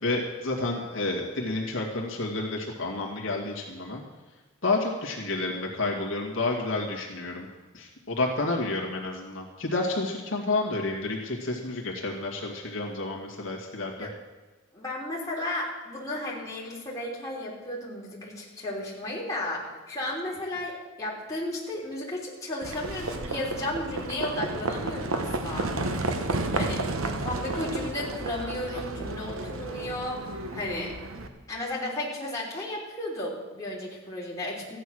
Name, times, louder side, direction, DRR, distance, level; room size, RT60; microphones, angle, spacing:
voice 1, 0.0-4.0 4.6-7.5 7.7-14.1 26.6-26.8, left 2 dB, 65° left, -2 dB, 2.2 m, -30 dB
voice 2, 14.7-25.7 26.5-26.8 27.2-30.2 30.5-30.9 31.5-34.8, left 1 dB, 15° left, -5 dB, 3.3 m, -34 dB
Livestock farm animals working animals, 22.6-31.3, right 2 dB, 80° right, 1.1 m, -32 dB
14.5 x 9.9 x 6.3 m, 1.2 s
head